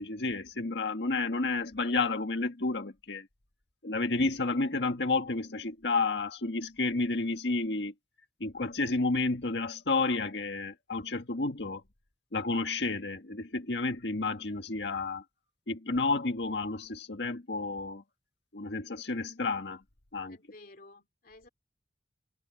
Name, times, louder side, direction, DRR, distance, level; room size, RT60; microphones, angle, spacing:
voice 1, 0.0-3.3 3.8-7.9 8.4-11.8 12.3-15.2 15.7-18.0 18.5-19.8 20.1-20.4, left 3 dB, 70° left, 1.7 m, -31 dB
voice 2, 20.3-21.5, left 2 dB, 55° left, 3.3 m, -53 dB
head